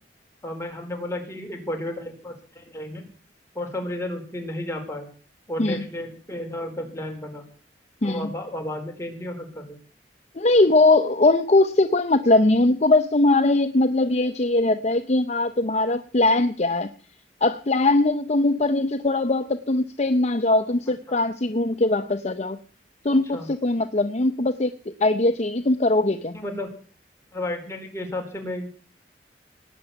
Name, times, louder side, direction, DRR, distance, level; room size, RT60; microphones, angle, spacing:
voice 1, 0.4-3.0 3.5-5.1 5.5-7.4 8.0-9.8 21.1-21.2 23.3-23.5 26.3-26.7 27.3-28.8, left 1 dB, 15° left, 3 dB, 4.1 m, -32 dB
voice 2, 10.3-16.9 17.4-22.6 23.0-24.7 25.0-26.4, left 2 dB, 40° left, 9 dB, 0.8 m, -21 dB
19.0 x 7.0 x 9.1 m, 0.41 s
head